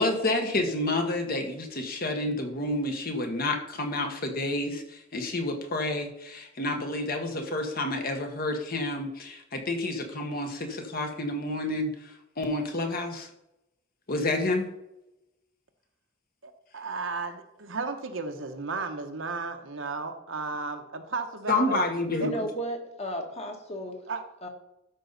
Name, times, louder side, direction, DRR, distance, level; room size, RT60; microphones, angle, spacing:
voice 1, 0.0-13.3 14.1-14.7 21.5-22.5, left 2 dB, 45° left, 4 dB, 1.4 m, -29 dB
voice 2, 16.4-21.8 22.2-22.3 24.1-24.2, right 4 dB, 70° right, 6 dB, 1.1 m, -34 dB
voice 3, 22.1-24.0 24.4-24.5, equal, 30° left, 3 dB, 1.6 m, -34 dB
12.5 x 5.5 x 4.0 m, 0.88 s
head